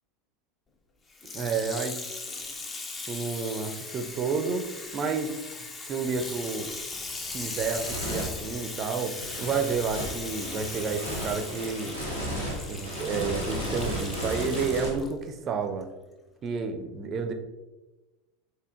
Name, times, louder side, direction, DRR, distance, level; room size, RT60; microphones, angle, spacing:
Water tap faucet / Sink (filling or washing), 1.1-15.1 15.8-15.9, left 3 dB, 25° left, 0.5 m, -39 dB
voice 1, 1.3-2.0 3.1-4.7 4.9-5.3 5.9-6.7 7.3-12.0 12.7-15.9 16.4-17.3, right 5 dB, 35° right, 7 dB, 0.4 m, -30 dB
sound 1, 6.0-6.2 6.7-14.9, equal, 90° left, 1.1 m, -35 dB
4.8 x 3.1 x 2.4 m, 1.1 s
figure-of-eight pair, 80°, 0 cm